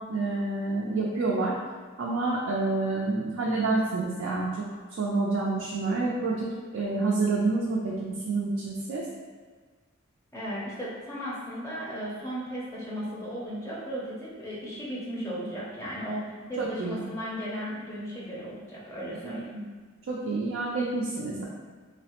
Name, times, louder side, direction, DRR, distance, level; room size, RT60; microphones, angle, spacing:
voice 1, 0.0-1.5 2.0-4.5 5.0-9.0 16.6-17.0 19.2-19.4 20.1-21.4, right 3 dB, 80° right, -4 dB, 0.4 m, -28 dB
voice 2, 10.3-19.7, equal, 15° left, -7 dB, 0.5 m, -36 dB
3.1 x 2.0 x 2.9 m, 1.5 s
head